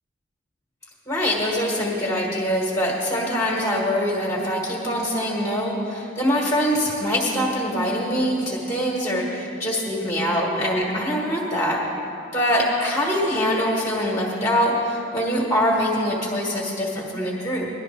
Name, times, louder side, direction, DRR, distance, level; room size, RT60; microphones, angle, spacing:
voice 1, 1.1-11.8 12.3-17.7, equal, 15° left, -3 dB, 1.4 m, -23 dB
18.5 x 11.5 x 3.3 m, 2.9 s
head